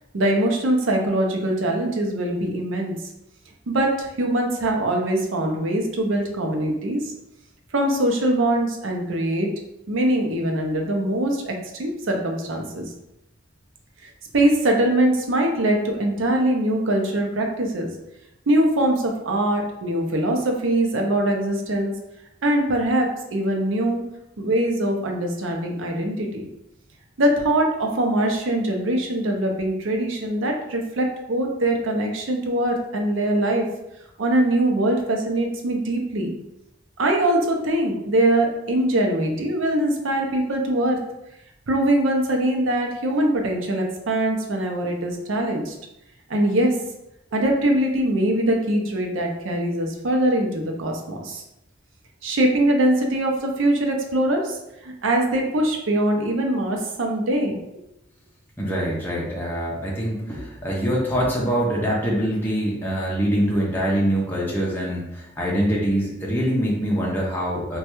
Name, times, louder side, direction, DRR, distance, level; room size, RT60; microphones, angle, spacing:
voice 1, 0.1-2.9 3.7-7.0 7.7-9.5 9.9-12.9 14.3-17.9 18.5-21.9 22.4-24.0 24.4-26.4 27.2-33.7 34.2-36.4 37.0-41.0 41.7-45.7 46.3-46.7 47.3-51.4 52.2-57.6, right 1 dB, 85° right, 2 dB, 0.6 m, -22 dB
voice 2, 58.6-67.8, equal, 10° left, -5 dB, 0.5 m, -24 dB
3.1 x 2.2 x 2.9 m, 0.87 s
head